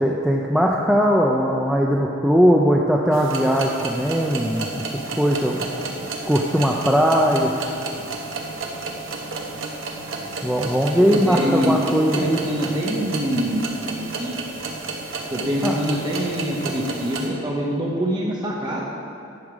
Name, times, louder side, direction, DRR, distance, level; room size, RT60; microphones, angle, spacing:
voice 1, 0.0-5.6 6.3-7.5 10.4-12.4 15.6-15.7, equal, ahead, -1 dB, 0.4 m, -19 dB
sound 1, 3.1-17.3, right 3 dB, 65° right, 1.1 m, -32 dB
voice 2, 11.0-14.3 15.3-18.8, equal, 20° right, -4 dB, 0.9 m, -25 dB
10.5 x 6.6 x 5.0 m, 2.6 s
head